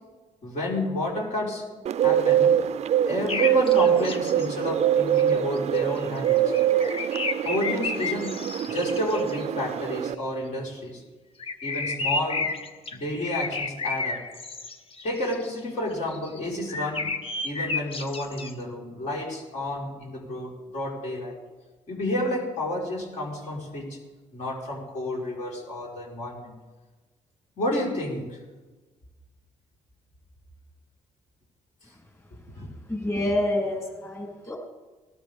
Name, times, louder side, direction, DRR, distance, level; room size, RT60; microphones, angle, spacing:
voice 1, 0.4-2.6 3.1-6.5 7.4-11.0 11.6-12.5 12.9-14.2 15.0-17.1 17.4-21.4 21.9-24.0 24.3-26.5 27.6-28.4 32.5-32.7, left 1 dB, 60° left, -3 dB, 5.1 m, -30 dB
Bird, 1.9-10.1, right 10 dB, 50° right, 0.4 m, -24 dB
sound 1, 3.3-4.5 5.2-5.3 5.5-9.4 11.4-15.5 15.9-16.4 16.7-18.5, left 3 dB, 45° left, 1.3 m, -31 dB
voice 2, 32.8-34.6, left 1 dB, 20° left, -1 dB, 3.8 m, -27 dB
18.5 x 12.5 x 3.7 m, 1.3 s
cardioid pair, 85°, 14 cm